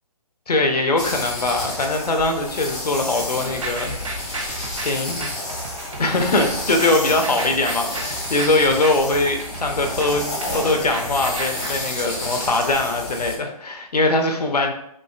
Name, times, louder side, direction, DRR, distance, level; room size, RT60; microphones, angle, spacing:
voice 1, 0.5-4.0 4.3-5.3 6.0-14.7, left 2 dB, 80° left, 4 dB, 0.6 m, -22 dB
sound 1, 1.0-13.4, left 1 dB, 10° left, 0.5 m, -30 dB
sound 2, 3.6-12.7, right 3 dB, 55° right, 0.6 m, -33 dB
3.1 x 2.5 x 2.4 m, 0.75 s
figure-of-eight pair, 145°, 20 cm